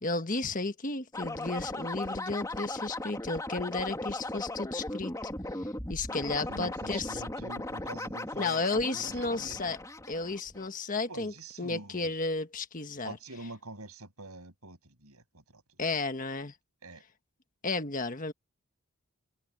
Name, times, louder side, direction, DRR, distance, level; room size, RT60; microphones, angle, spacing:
voice 1, 0.0-5.1 5.6-7.2 8.4-9.8 10.1-11.3 11.6-13.2 15.8-16.5 17.6-18.3, left 3 dB, 35° left, 1.5 m, -33 dB
sound 1, 1.1-10.7, left 1 dB, 15° left, 3.3 m, -38 dB
voice 2, 6.1-9.6 11.1-12.1 13.0-15.6 16.8-17.0, right 2 dB, 80° right, 7.6 m, -46 dB
head